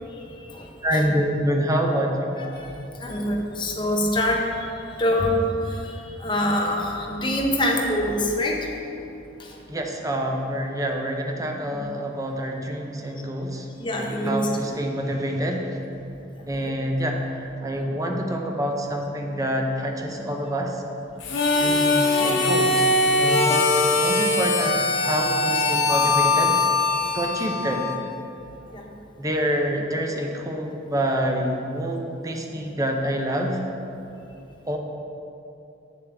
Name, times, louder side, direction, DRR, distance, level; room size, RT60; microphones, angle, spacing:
voice 1, 0.1-1.0 2.4-8.7 9.4-9.6 11.7-11.8 13.8-14.5 16.4-16.5 28.7-28.9, left 1 dB, 25° left, 0 dB, 0.8 m, -26 dB
voice 2, 0.8-2.3 9.7-15.8 16.5-20.8 21.6-22.8 23.2-26.6 27.1-27.9 29.2-33.6 34.7-34.8, equal, 20° right, 2 dB, 0.6 m, -27 dB
Harmonica, 21.2-28.1, left 2 dB, 80° left, 1.1 m, -21 dB
7.6 x 7.1 x 3.4 m, 2.8 s
head